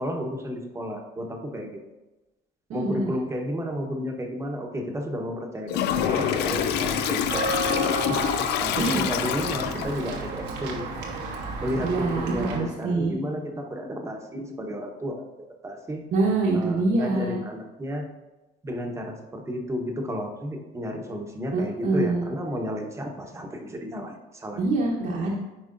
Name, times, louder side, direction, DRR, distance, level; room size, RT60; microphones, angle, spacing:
voice 1, 0.0-1.7 2.7-7.5 8.6-10.9 11.6-15.3 15.6-16.0 16.5-18.1 18.6-24.6, equal, 15° right, 2 dB, 1.0 m, -32 dB
voice 2, 2.7-3.1 8.8-9.1 11.7-13.1 16.1-17.4 21.5-22.3 24.6-25.4, right 2 dB, 60° right, -4 dB, 1.2 m, -25 dB
Toilet flush, 5.7-10.1, left 10 dB, 85° left, 0.4 m, -26 dB
Walk footsteps / Bell, 5.9-12.6, right 3 dB, 85° right, 1.3 m, -32 dB
9.8 x 4.8 x 2.6 m, 1.1 s
cardioid pair, 110°, 17 cm